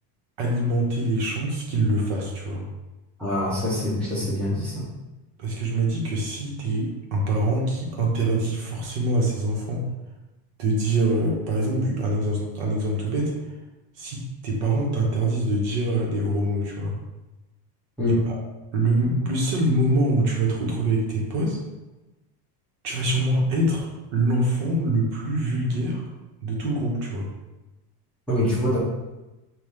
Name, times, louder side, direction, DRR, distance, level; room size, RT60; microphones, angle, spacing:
voice 1, 0.4-2.7 5.4-9.9 10.6-13.3 14.0-16.9 18.1-18.2 18.7-21.6 22.8-23.9 24.1-26.1 26.4-27.3, right 1 dB, 65° right, -2 dB, 1.3 m, -24 dB
voice 2, 3.2-4.9 18.0-18.2 28.3-28.8, left 1 dB, ahead, -9 dB, 0.6 m, -24 dB
5.6 x 2.7 x 3.3 m, 1.1 s
cardioid pair, 175°, 48 cm